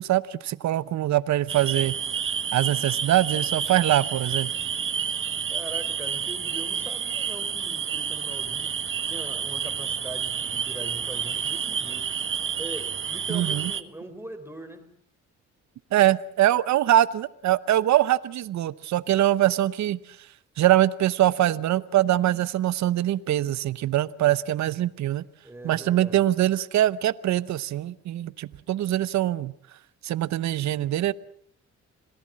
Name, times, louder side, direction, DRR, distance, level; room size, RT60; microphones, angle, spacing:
voice 1, 0.0-1.9 2.5-4.5 13.3-13.7 15.9-20.0 20.6-25.2 25.6-29.5 30.0-31.1, right 13 dB, 70° right, 17 dB, 0.9 m, -23 dB
sound 1, 1.5-13.8, right 7 dB, 40° right, 1.4 m, -29 dB
voice 2, 5.5-8.7 9.0-12.1 12.6-14.9 25.4-26.2, right 1 dB, 10° right, 8 dB, 4.1 m, -41 dB
27.0 x 18.0 x 7.5 m, 0.68 s
cardioid pair, 90°, 30 cm